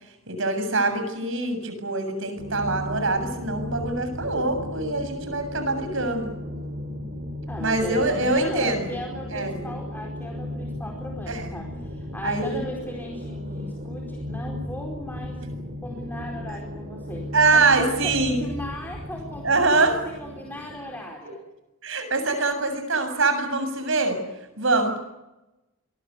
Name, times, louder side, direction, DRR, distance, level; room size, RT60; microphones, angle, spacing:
voice 1, 0.3-6.3 7.6-8.8 9.3-9.6 11.3-11.5 12.2-12.6 17.3-18.4 19.4-20.0 21.8-24.2 24.6-25.0, right 3 dB, 65° right, 8 dB, 7.4 m, -24 dB
sound 1, 2.4-21.0, left 1 dB, 45° right, 4.5 m, -35 dB
voice 2, 7.5-15.5 15.8-21.4 24.7-25.0, left 1 dB, 10° left, 0 dB, 4.5 m, -37 dB
28.0 x 23.0 x 8.2 m, 0.96 s
head